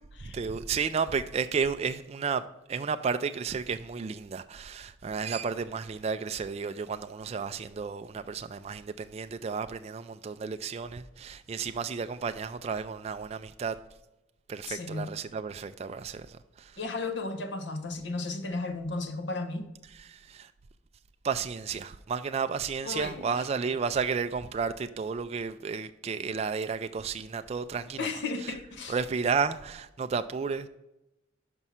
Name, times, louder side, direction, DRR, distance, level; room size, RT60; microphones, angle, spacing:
voice 1, 0.2-13.8 14.5-16.8 19.9-20.5 21.2-28.5 28.9-30.7, right 5 dB, 35° right, 0.3 m, -32 dB
voice 2, 14.7-15.1 16.8-19.7 22.8-23.3 28.0-29.0, left 3 dB, 65° left, 0.8 m, -34 dB
6.0 x 5.4 x 5.6 m
head